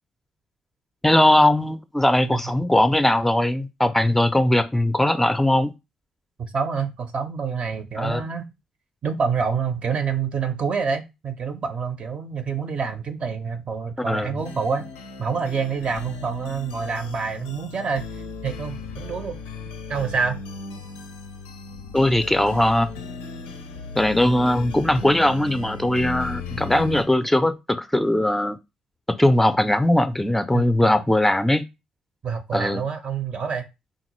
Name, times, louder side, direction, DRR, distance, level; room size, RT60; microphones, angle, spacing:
voice 1, 1.0-5.7 8.0-8.2 14.1-14.3 21.9-22.9 24.0-28.6 29.1-31.6 32.5-32.8, left 1 dB, 10° left, 0.4 m, -20 dB
voice 2, 6.4-8.5 9.0-14.8 15.2-19.4 19.9-20.4 30.5-30.9 32.2-33.7, right 5 dB, 45° right, 0.5 m, -27 dB
sound 1, 14.4-27.0, left 5 dB, 75° left, 0.5 m, -37 dB
3.6 x 2.2 x 3.0 m
hypercardioid pair, 45°, 3 cm